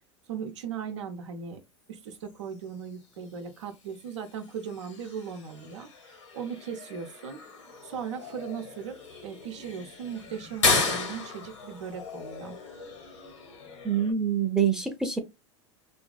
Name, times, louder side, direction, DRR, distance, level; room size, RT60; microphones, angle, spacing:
voice 1, 0.3-1.6 1.9-7.4 7.8-9.0 9.2-12.6, right 7 dB, 80° right, 0.7 m, -38 dB
sound 1, 2.2-14.1, left 4 dB, 90° left, 1.2 m, -35 dB
voice 2, 13.8-15.2, right 7 dB, 5° right, 0.6 m, -25 dB
2.6 x 2.5 x 2.3 m
hypercardioid pair, 95°, 15 cm